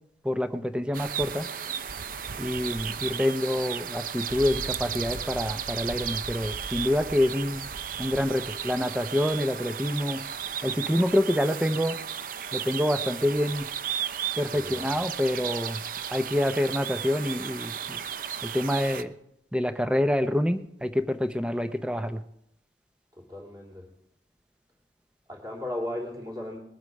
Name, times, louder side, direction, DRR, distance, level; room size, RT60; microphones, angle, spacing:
voice 1, 0.2-1.5 2.4-7.6 8.0-10.2 10.6-12.0 12.5-13.7 14.4-15.8 16.1-18.0 18.4-19.1 19.5-22.2, left 1 dB, 5° right, 9 dB, 0.7 m, -27 dB
sound 1, 0.9-19.0, right 8 dB, 50° right, 0.6 m, -34 dB
voice 2, 14.5-14.8 23.2-23.9 25.3-26.6, left 1 dB, 20° right, 0 dB, 3.2 m, -36 dB
21.0 x 8.0 x 5.3 m, 0.79 s
head